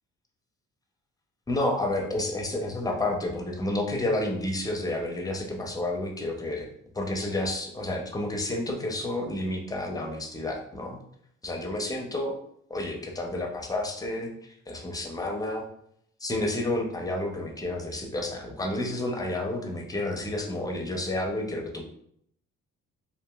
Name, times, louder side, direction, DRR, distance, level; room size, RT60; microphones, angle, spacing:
voice 1, 1.5-6.7 6.9-11.0 11.4-12.4 12.7-15.6 16.2-21.8, left 1 dB, 10° left, 2 dB, 0.5 m, -30 dB
2.9 x 2.6 x 2.2 m, 0.69 s
cardioid pair, 90°, 30 cm